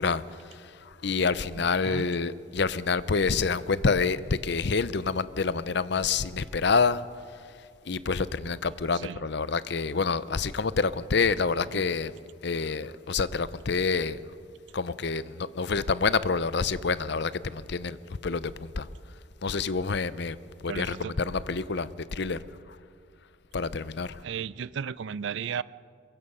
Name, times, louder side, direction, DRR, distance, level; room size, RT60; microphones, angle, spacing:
voice 1, 0.0-7.0 7.9-12.1 12.4-14.2 14.7-18.0 18.2-18.9 19.4-20.4 20.6-22.4 22.7-22.8 23.5-24.2, left 4 dB, 55° left, 0.6 m, -27 dB
voice 2, 1.5-2.1 8.9-9.2 11.7-11.9 20.7-21.1 24.2-25.6, right 7 dB, 65° right, 0.4 m, -35 dB
23.0 x 22.0 x 5.5 m
head